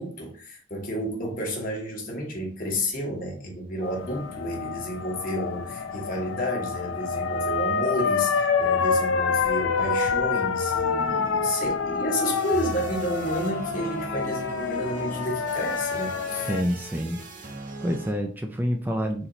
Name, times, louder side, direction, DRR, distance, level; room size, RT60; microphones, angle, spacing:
voice 1, 0.0-16.5, equal, 45° left, 0 dB, 1.2 m, -31 dB
sound 1, 3.8-16.6, left 5 dB, 90° left, 0.5 m, -27 dB
sound 2, 12.2-18.1, right 3 dB, 40° right, 0.7 m, -40 dB
voice 2, 16.5-17.2 17.8-19.3, equal, 10° right, 3 dB, 0.3 m, -27 dB
4.1 x 2.9 x 3.9 m, 0.43 s
head